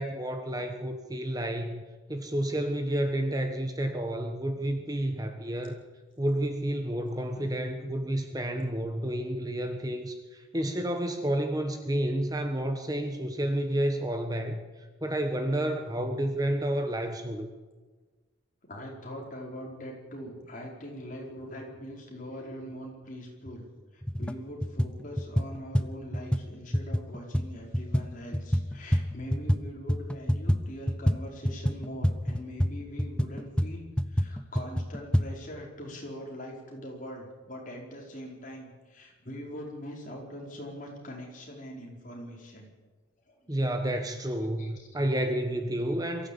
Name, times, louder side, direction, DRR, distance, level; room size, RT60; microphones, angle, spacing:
voice 1, 0.0-1.8 2.1-5.8 6.2-14.6 15.0-17.5 43.5-46.3, right 1 dB, 20° right, 6 dB, 1.2 m, -30 dB
voice 2, 7.3-7.7 18.7-23.7 23.9-42.7 43.3-43.6 44.6-44.9, equal, 40° left, -1 dB, 4.9 m, -42 dB
sound 1, 23.5-23.6 24.0-24.4 24.6-29.6 29.9-35.3, equal, 5° left, 0.7 m, -28 dB
22.5 x 14.5 x 8.7 m, 1.3 s
head